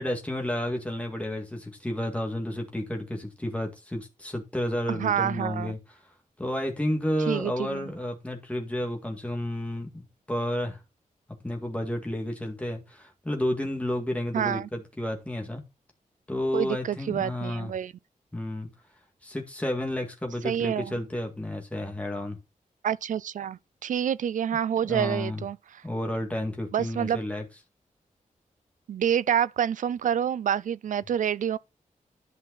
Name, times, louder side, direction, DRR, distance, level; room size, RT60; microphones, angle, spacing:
voice 1, 0.0-5.8 6.4-10.8 11.4-15.6 16.3-17.7 18.3-18.7 19.2-22.4 24.8-25.5 25.8-27.4, left 1 dB, 10° left, 2.0 m, -31 dB
voice 2, 4.9-5.7 7.3-7.9 14.3-14.7 16.5-17.9 20.4-20.9 22.8-25.6 26.7-27.2 28.9-31.6, right 9 dB, 70° right, 0.4 m, -27 dB
11.0 x 5.7 x 4.1 m
wide cardioid pair, 175°, 14 cm